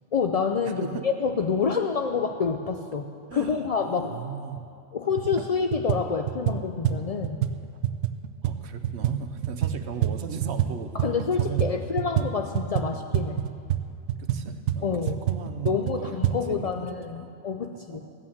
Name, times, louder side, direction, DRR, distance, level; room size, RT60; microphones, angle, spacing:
voice 1, 0.1-4.2 4.9-7.4 10.9-13.4 14.8-15.2 15.6-18.0, left 5 dB, 60° left, 5 dB, 0.3 m, -27 dB
voice 2, 0.6-1.1 3.3-4.7 8.4-11.9 14.2-16.2 16.5-17.3 17.9-18.1, right 7 dB, 60° right, 7 dB, 1.0 m, -37 dB
sound 1, 4.6-4.7 5.1-5.5 5.7-10.7 11.0-16.4, right 11 dB, 85° right, 1.0 m, -27 dB
15.0 x 8.7 x 7.3 m, 2.5 s
omnidirectional pair, 1.3 m